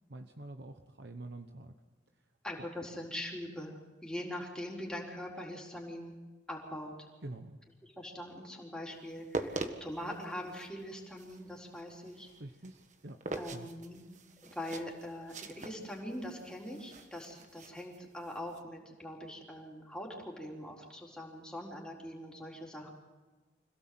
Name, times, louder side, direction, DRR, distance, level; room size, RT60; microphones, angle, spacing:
voice 1, 0.1-1.7 7.2-7.6 12.4-13.7, right 2 dB, 65° right, 6 dB, 1.1 m, -47 dB
voice 2, 2.4-6.2 6.5-6.9 7.8-12.3 13.3-14.0 14.4-22.9, left 1 dB, 5° left, -2 dB, 4.1 m, -42 dB
sound 1, 9.0-18.6, right 2 dB, 40° right, 1.5 m, -43 dB
26.5 x 17.0 x 7.8 m, 1.3 s
head